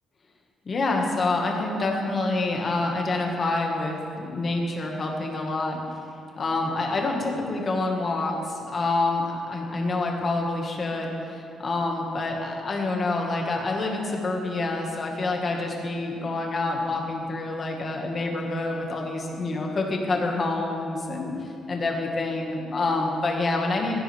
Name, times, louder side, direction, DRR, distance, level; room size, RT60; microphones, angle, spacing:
voice 1, 0.7-5.8 6.4-21.3 21.7-23.9, left 2 dB, 30° left, 1 dB, 1.8 m, -27 dB
16.5 x 15.0 x 3.5 m, 2.9 s
cardioid pair, 170°, 0 cm